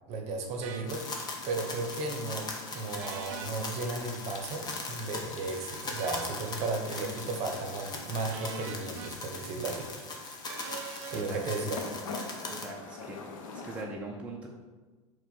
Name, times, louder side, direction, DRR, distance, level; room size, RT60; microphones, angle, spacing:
voice 1, 0.1-1.0 1.4-10.4 11.1-11.8, right 3 dB, 40° right, 3 dB, 0.7 m, -35 dB
sound 1, 0.6-0.9 3.0-3.5 6.0-6.4 8.3-9.1 10.4-11.3, right 7 dB, 70° right, 0.5 m, -43 dB
sound 2, 0.8-13.8, left 4 dB, 85° left, 0.6 m, -47 dB
sound 3, 0.9-12.7, left 3 dB, 25° left, 0.7 m, -40 dB
voice 2, 12.5-13.4 13.6-14.5, right 2 dB, 5° right, -2 dB, 0.4 m, -41 dB
4.4 x 2.2 x 4.2 m, 1.3 s
supercardioid pair, 115°, 17 cm